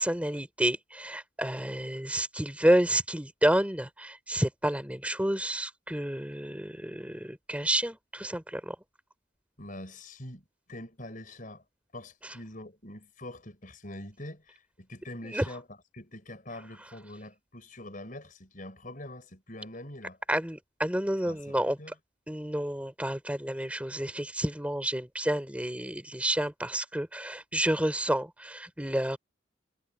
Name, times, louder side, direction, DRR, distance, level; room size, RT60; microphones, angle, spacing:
voice 1, 0.0-8.8 15.3-15.5 20.3-21.8 22.3-29.2, right 1 dB, 5° right, 3.4 m, -29 dB
voice 2, 9.6-11.6 11.9-15.6 15.9-20.2 21.3-21.9, left 1 dB, 40° left, 5.6 m, -44 dB
head